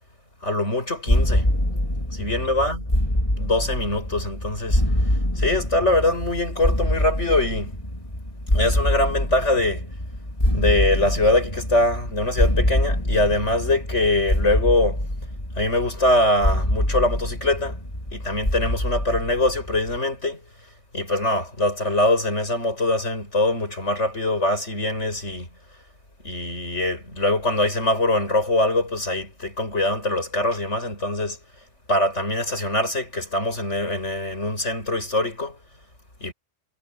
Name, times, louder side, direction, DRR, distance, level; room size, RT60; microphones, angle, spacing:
voice 1, 0.4-1.5 2.1-2.8 3.4-7.7 8.5-9.9 10.5-15.1 15.5-17.8 18.1-20.4 20.9-25.5 26.2-31.4 31.9-35.6 36.2-36.3, left 2 dB, 70° left, 8.3 m, -23 dB
sound 1, 1.1-20.0, left 1 dB, 25° left, 3.7 m, -25 dB
omnidirectional pair, 1.3 m